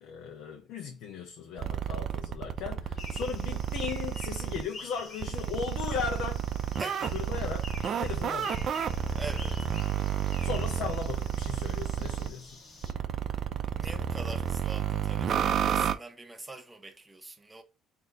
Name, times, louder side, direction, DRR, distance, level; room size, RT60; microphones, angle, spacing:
voice 1, 0.0-6.5 7.1-7.7 8.0-8.6 10.4-12.5, left 6 dB, 75° left, 0.8 m, -37 dB
sound 1, 1.6-4.6 5.2-12.3 12.8-15.9, right 9 dB, 45° right, 0.5 m, -31 dB
sound 2, 3.0-12.9, left 3 dB, 30° left, 1.4 m, -47 dB
voice 2, 6.8-7.2 8.5-8.8 9.1-9.6 13.8-17.6, right 2 dB, 15° right, 0.7 m, -43 dB
4.2 x 2.7 x 3.6 m
cardioid pair, 125°, 0 cm